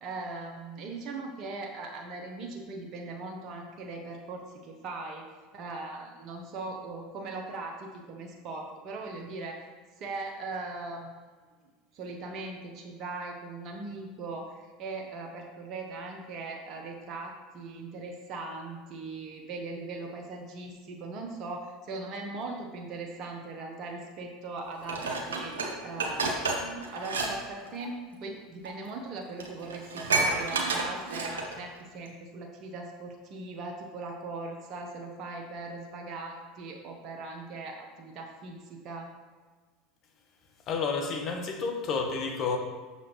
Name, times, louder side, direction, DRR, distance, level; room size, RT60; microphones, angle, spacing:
voice 1, 0.0-5.2 5.5-9.6 10.0-11.1 11.6-11.7 11.9-25.5 25.8-39.1, right 3 dB, 50° right, 1 dB, 0.9 m, -39 dB
Dishes pots and pans, 24.9-27.3 27.6-27.8 28.6-28.7 29.1-29.2 29.4-31.6 32.1-32.2, right 3 dB, 85° right, 0.8 m, -30 dB
voice 2, 40.7-42.6, left 5 dB, 45° left, 3 dB, 1.0 m, -30 dB
6.2 x 5.6 x 3.0 m, 1.4 s
hypercardioid pair, 85°, 0 cm